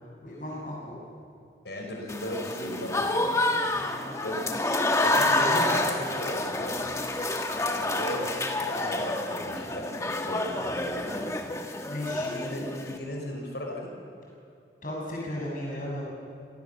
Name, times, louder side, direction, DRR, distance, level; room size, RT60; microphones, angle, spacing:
voice 1, 0.2-1.0 3.7-4.2 5.3-5.6 11.8-12.3 14.8-16.1, left 1 dB, 50° left, -3 dB, 7.4 m, -36 dB
voice 2, 1.6-3.5 4.0-4.4 5.0-7.0 7.7-10.4 10.7-11.3 12.2-13.9, equal, 75° left, 1 dB, 5.5 m, -36 dB
Applause / Crowd, 2.1-13.0, left 2 dB, 15° left, 1.2 m, -28 dB
24.5 x 18.0 x 7.4 m, 2.6 s
head